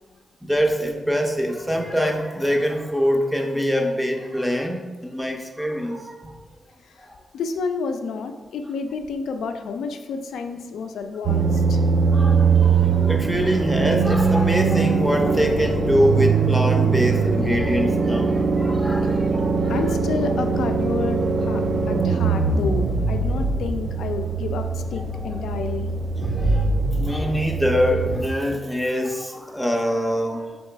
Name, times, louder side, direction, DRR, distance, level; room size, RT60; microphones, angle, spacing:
voice 1, 0.4-6.3 7.1-7.2 12.1-19.8 25.2-25.3 26.4-26.7 27.0-30.6, equal, ahead, 2 dB, 0.4 m, -24 dB
voice 2, 7.3-11.8 19.2-19.4 19.7-21.6 21.9-25.9, left 4 dB, 85° left, 6 dB, 0.3 m, -30 dB
sound 1, 11.3-28.2, right 4 dB, 60° right, 0.4 m, -21 dB
3.1 x 2.9 x 4.4 m, 1.3 s
cardioid pair, 85°, 0 cm